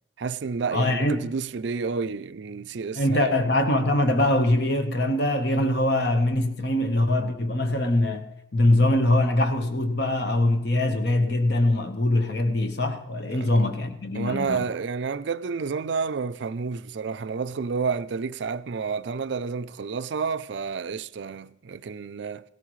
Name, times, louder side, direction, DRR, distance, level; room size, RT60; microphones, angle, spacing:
voice 1, 0.2-3.4 13.3-13.5 14.1-22.4, right 5 dB, 60° right, 0.4 m, -30 dB
voice 2, 0.7-1.2 3.0-8.3 8.5-14.6, left 1 dB, 55° left, 1.1 m, -23 dB
17.0 x 13.5 x 3.2 m
head